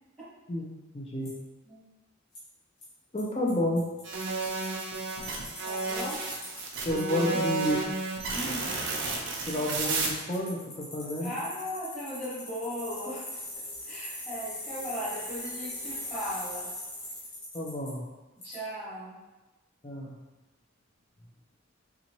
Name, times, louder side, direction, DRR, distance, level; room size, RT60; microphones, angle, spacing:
voice 1, 0.9-1.3 3.1-3.8 6.9-7.8 9.5-11.3 17.5-18.0 19.8-20.1, left 1 dB, 30° left, -2 dB, 0.6 m, -30 dB
Bicycle, 1.3-1.4 2.4-2.5 2.8-2.9 3.2-3.3 3.5-3.6 3.8-6.6 7.0-7.1 9.0-9.1 9.5-17.9 18.4-18.6, left 1 dB, 90° left, 1.2 m, -40 dB
sound 1, 4.0-10.1, right 3 dB, 60° right, 0.6 m, -32 dB
voice 2, 5.6-6.2 7.3-7.4 8.3-8.7 11.2-13.4 13.8-16.7 18.4-19.2, equal, 10° right, -16 dB, 1.4 m, -37 dB
4.0 x 2.4 x 2.9 m, 1.1 s
head